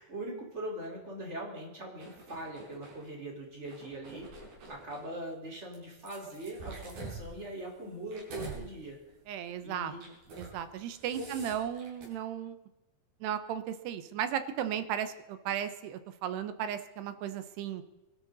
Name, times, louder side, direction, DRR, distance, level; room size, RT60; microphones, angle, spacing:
voice 1, 0.0-4.3 4.7-9.0 9.6-10.0 11.2-11.4, right 1 dB, 15° right, -1 dB, 4.2 m, -41 dB
sound 1, 2.0-3.0 3.6-5.1 5.7-8.6 9.0-9.3 9.9-10.6 10.8-12.1, right 3 dB, 50° right, 6.3 m, -46 dB
voice 2, 9.3-12.6 13.2-17.8, right 9 dB, 75° right, 11 dB, 2.6 m, -35 dB
24.0 x 13.5 x 4.1 m, 1.0 s
omnidirectional pair, 5.6 m